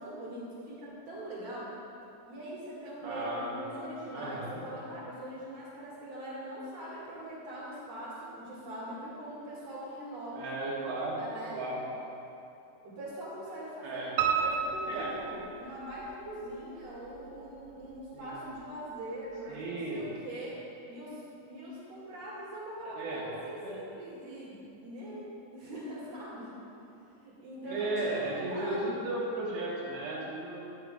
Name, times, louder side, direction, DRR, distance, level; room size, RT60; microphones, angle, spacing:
voice 1, 0.0-1.7 2.2-10.5 10.9-11.5 12.8-20.6 20.9-21.2 21.5-26.5 27.2-29.0, right 1 dB, 45° right, -8 dB, 2.9 m, -42 dB
voice 2, 3.0-3.5 4.1-4.6 10.3-11.2 11.5-11.8 13.8-14.1 14.4-14.5 14.9-15.1 18.1-18.4 19.5-20.0 23.0-23.3 23.6-23.8 27.7-30.6, right 2 dB, 70° right, -5 dB, 3.4 m, -35 dB
Piano, 14.2-16.1 16.5-17.4 17.7-17.8 18.3-18.4 18.6-18.7, right 6 dB, 90° right, 3.0 m, -31 dB
11.0 x 10.5 x 2.5 m, 2.8 s
omnidirectional pair, 5.4 m